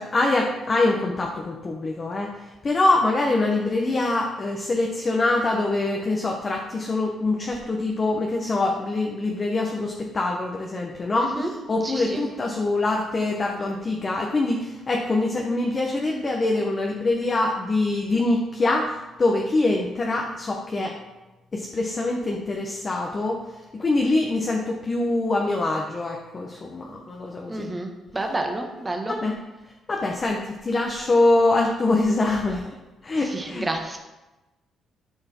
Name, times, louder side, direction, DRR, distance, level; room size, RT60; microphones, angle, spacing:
voice 1, 0.0-21.0 21.5-23.4 23.7-27.7 29.1-29.3 29.9-32.8 33.0-33.6, left 2 dB, 35° left, 0 dB, 1.2 m, -24 dB
voice 2, 11.2-11.5 11.8-12.2 27.5-29.1 33.2-34.0, right 2 dB, 20° right, 2 dB, 1.6 m, -30 dB
13.0 x 4.8 x 4.6 m, 1.1 s
cardioid pair, 90°, 0 cm